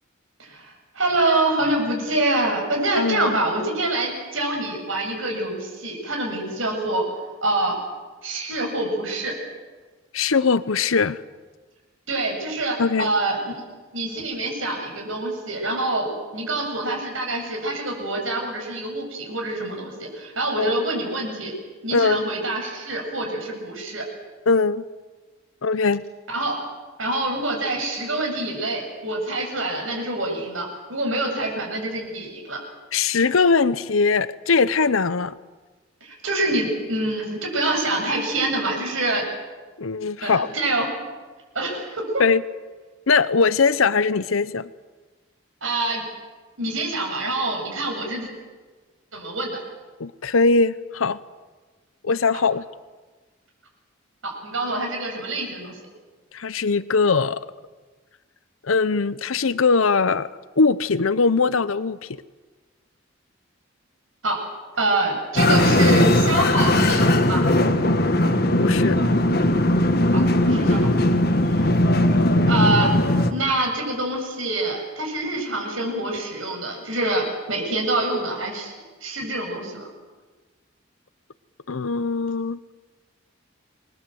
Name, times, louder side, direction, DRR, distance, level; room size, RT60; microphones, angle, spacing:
voice 1, 0.4-7.0 7.4-7.8 8.2-9.3 12.1-13.4 13.9-21.5 21.8-24.1 26.3-26.6 27.0-32.6 36.0-39.3 40.2-40.9 41.5-42.1 45.6-46.0 46.6-48.3 49.1-49.6 54.2-55.7 64.2-64.4 64.8-67.4 70.1-70.9 71.4-71.6 72.5-72.9 73.3-78.7 79.0-79.9, right 2 dB, 75° right, 1 dB, 7.7 m, -26 dB
voice 2, 3.0-3.4 10.1-11.2 12.8-13.1 20.6-20.7 21.9-22.2 24.5-24.8 25.6-26.0 32.9-35.3 39.8-40.5 42.2-42.4 43.1-44.7 50.0-51.2 52.0-52.6 56.3-57.4 58.6-60.3 60.6-62.1 68.6-69.0 81.7-82.7, left 4 dB, 85° left, 16 dB, 0.8 m, -21 dB
sound 1, 65.4-73.3, left 1 dB, 50° left, 1.8 m, -18 dB
28.0 x 21.5 x 7.9 m, 1.3 s
head